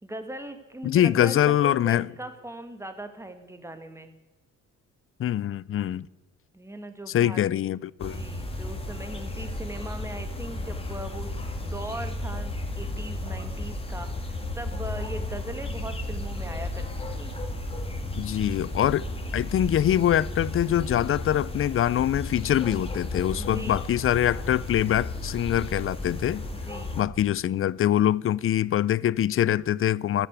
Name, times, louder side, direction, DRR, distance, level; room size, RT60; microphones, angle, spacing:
voice 1, 0.0-4.1 6.5-7.4 8.1-11.3 11.6-17.3 23.4-23.9 26.6-27.0, right 1 dB, 10° right, 1.8 m, -39 dB
voice 2, 0.8-2.1 5.2-6.1 7.1-8.2 18.2-19.1 19.3-26.5 27.0-30.3, left 11 dB, 45° left, 0.5 m, -24 dB
sound 1, 8.0-27.0, left 1 dB, 20° left, 2.2 m, -34 dB
13.5 x 10.0 x 8.2 m
cardioid pair, 90°, 30 cm